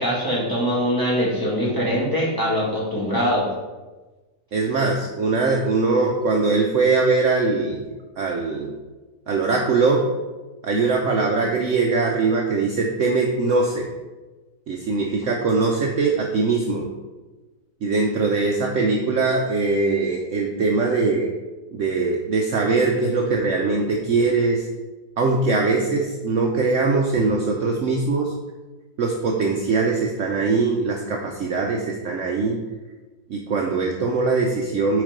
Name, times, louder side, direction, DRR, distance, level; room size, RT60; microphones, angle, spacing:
voice 1, 0.0-3.5, equal, 15° left, -6 dB, 1.9 m, -22 dB
voice 2, 4.5-7.8 8.2-8.7 9.3-10.0 10.6-13.9 14.7-16.9 17.8-21.3 21.7-24.7 25.2-28.3 29.0-32.6 33.3-35.0, right 3 dB, 60° right, 1 dB, 0.9 m, -21 dB
6.4 x 4.2 x 5.1 m, 1.2 s
omnidirectional pair, 1.7 m